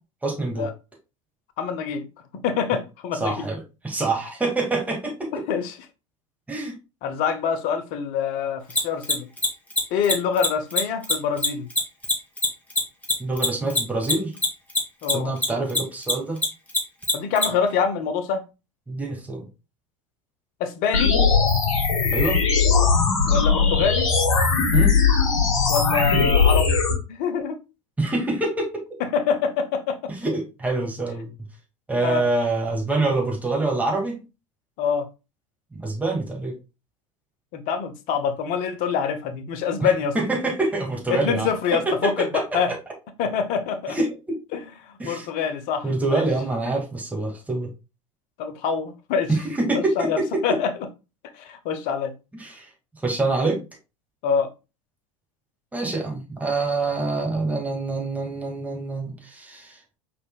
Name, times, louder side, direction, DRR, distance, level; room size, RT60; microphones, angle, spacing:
voice 1, 0.2-0.7 3.2-3.6 3.8-5.3 6.5-6.7 13.2-14.3 15.1-16.4 18.9-19.5 22.1-22.4 24.7-25.0 28.0-28.7 30.1-31.3 31.9-34.2 35.7-36.5 39.8-42.8 43.9-44.4 45.0-45.3 45.8-47.7 49.3-50.4 52.3-52.7 53.0-53.6 55.7-59.8, right 2 dB, 10° right, 2.0 m, -26 dB
voice 2, 1.6-2.1 2.4-3.4 5.3-5.8 7.0-9.3 9.9-11.7 15.0-15.3 17.1-18.4 20.6-21.2 23.2-24.1 25.7-26.8 27.1-27.6 29.0-30.0 32.0-32.2 34.8-35.1 37.5-40.1 41.1-42.7 43.2-44.0 44.5-46.2 48.4-49.3 49.7-50.7 51.3-52.1 54.2-54.5, left 6 dB, 55° left, 1.0 m, -25 dB
Mechanisms, 8.7-15.4 15.7-17.4, left 2 dB, 10° left, 2.1 m, -21 dB
sound 1, 20.9-26.9, left 5 dB, 75° left, 1.8 m, -19 dB
5.2 x 4.4 x 2.3 m
hypercardioid pair, 85°, 17 cm